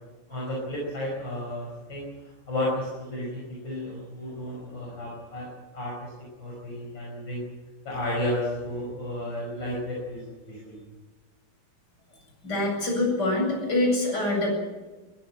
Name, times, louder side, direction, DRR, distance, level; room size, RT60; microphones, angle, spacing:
voice 1, 0.3-6.1 6.4-7.4 7.8-10.8, left 1 dB, 70° left, -3 dB, 6.0 m, -33 dB
voice 2, 12.4-14.5, left 2 dB, 55° left, 0 dB, 8.6 m, -25 dB
22.0 x 16.0 x 8.9 m, 1.2 s
omnidirectional pair, 2.1 m